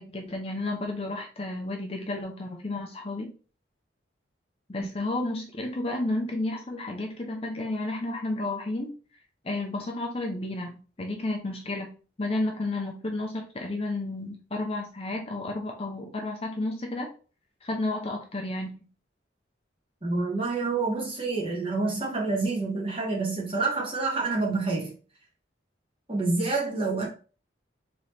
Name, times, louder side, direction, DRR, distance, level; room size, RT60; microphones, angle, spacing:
voice 1, 0.0-3.3 4.7-8.9 9.4-11.9 12.2-17.1 17.6-18.9, left 2 dB, 30° left, 0.6 m, -32 dB
voice 2, 20.0-24.9 26.1-27.1, right 3 dB, 30° right, 1.4 m, -27 dB
4.1 x 3.0 x 3.2 m
head